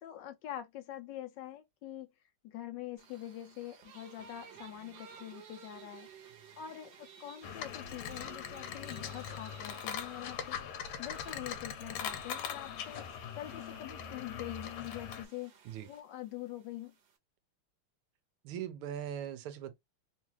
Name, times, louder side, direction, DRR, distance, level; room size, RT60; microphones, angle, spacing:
voice 1, 0.0-2.1 2.4-6.1 6.6-10.6 11.0-13.0 13.4-15.5 15.9-16.9, left 13 dB, 70° left, 1.1 m, -44 dB
sound 1, 3.0-17.2, right 7 dB, 60° right, 1.4 m, -56 dB
sound 2, 7.4-15.3, left 8 dB, 85° left, 1.7 m, -41 dB
voice 2, 18.4-19.8, right 10 dB, 85° right, 1.5 m, -40 dB
3.8 x 2.4 x 2.9 m
omnidirectional pair, 2.4 m